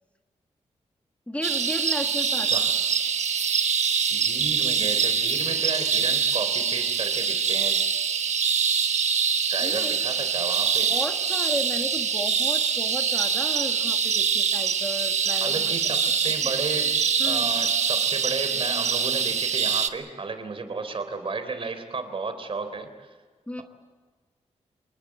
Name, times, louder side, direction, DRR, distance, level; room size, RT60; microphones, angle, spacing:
voice 1, 1.3-2.5 9.6-10.0 10.8-15.6 17.2-17.5 23.5-23.6, left 1 dB, 10° left, 5 dB, 1.5 m, -34 dB
sound 1, 1.4-19.9, right 6 dB, 70° right, 1.3 m, -24 dB
voice 2, 4.1-7.8 9.5-10.9 15.4-17.0 17.2-23.2, right 4 dB, 50° right, 9 dB, 3.5 m, -33 dB
27.0 x 21.0 x 7.6 m, 1.4 s
wide cardioid pair, 115°, 12 cm